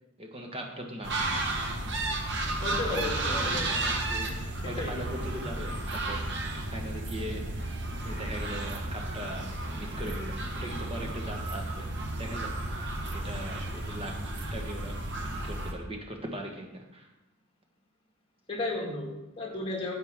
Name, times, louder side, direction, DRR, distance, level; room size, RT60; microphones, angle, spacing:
voice 1, 0.2-1.1 3.2-7.5 8.0-11.8 12.2-12.5 13.1-14.2 14.5-15.0 15.3-17.1, right 1 dB, 25° right, 2 dB, 1.4 m, -40 dB
sound 1, 1.0-15.7, right 2 dB, 55° right, 1.2 m, -33 dB
voice 2, 2.6-3.7 4.8-4.9 18.5-19.9, left 2 dB, 25° left, -1 dB, 2.0 m, -33 dB
10.5 x 8.0 x 3.7 m, 0.97 s
head